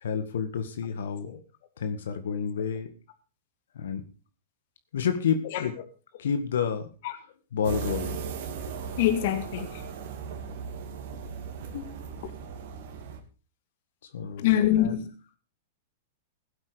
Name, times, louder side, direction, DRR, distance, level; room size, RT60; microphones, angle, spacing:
voice 1, 0.0-1.4 1.8-2.9 3.8-4.0 4.9-5.7 6.2-6.9 7.5-8.2 14.1-15.0, left 7 dB, 80° left, 1.8 m, -29 dB
voice 2, 5.4-5.8 7.0-7.2 9.0-9.8 11.7-11.9 12.2-12.3 14.4-15.1, left 12 dB, 60° left, 1.7 m, -26 dB
sound 1, 7.6-13.2, right 6 dB, 65° right, 2.6 m, -37 dB
16.0 x 8.4 x 5.1 m
hypercardioid pair, 125°, 0 cm